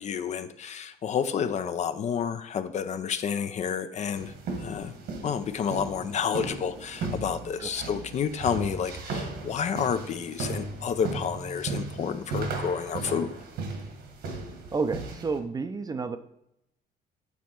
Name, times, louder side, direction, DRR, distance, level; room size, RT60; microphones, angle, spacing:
voice 1, 0.0-4.3 4.6-4.9 5.2-13.3, left 7 dB, 45° left, 11 dB, 0.5 m, -30 dB
sound 1, 4.1-15.4, right 3 dB, 70° right, 1.4 m, -36 dB
voice 2, 14.7-16.2, right 4 dB, 25° right, 10 dB, 0.5 m, -30 dB
8.4 x 4.1 x 4.5 m, 0.79 s
cardioid pair, 110°, 17 cm